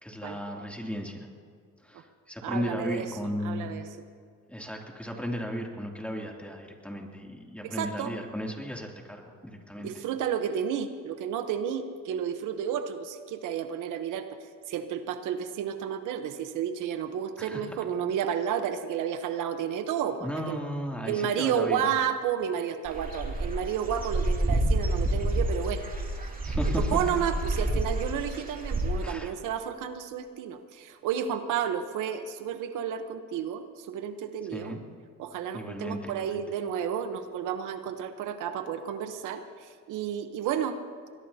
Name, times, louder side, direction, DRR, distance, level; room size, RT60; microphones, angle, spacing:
voice 1, 0.0-1.3 1.8-2.0 2.3-3.7 4.5-9.9 17.4-17.6 20.2-21.9 26.4-26.9 29.0-29.3 34.5-34.8 35.5-36.4, equal, 5° left, 0 dB, 2.8 m, -35 dB
voice 2, 2.4-3.1 3.4-3.8 7.6-8.1 9.8-14.4 14.7-20.6 21.0-25.8 26.7-34.8 35.2-40.8, right 8 dB, 90° right, 8 dB, 1.0 m, -31 dB
Dog / Bird, 22.8-29.1, right 1 dB, 30° right, 2.7 m, -29 dB
21.5 x 20.0 x 2.8 m, 2.1 s
cardioid pair, 90°, 30 cm